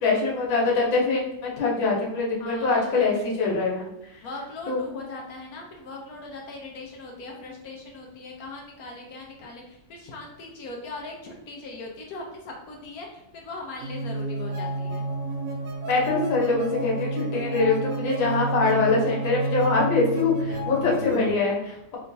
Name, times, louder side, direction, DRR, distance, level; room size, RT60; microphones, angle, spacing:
voice 1, 0.0-3.9 4.7-4.8 15.9-22.0, left 3 dB, 85° left, -2 dB, 1.7 m, -23 dB
voice 2, 2.4-3.1 4.2-15.0, left 3 dB, 70° left, 0 dB, 0.9 m, -39 dB
sound 1, 13.8-21.3, right 2 dB, 85° right, 0.7 m, -30 dB
3.3 x 3.0 x 2.6 m, 0.84 s
omnidirectional pair, 2.1 m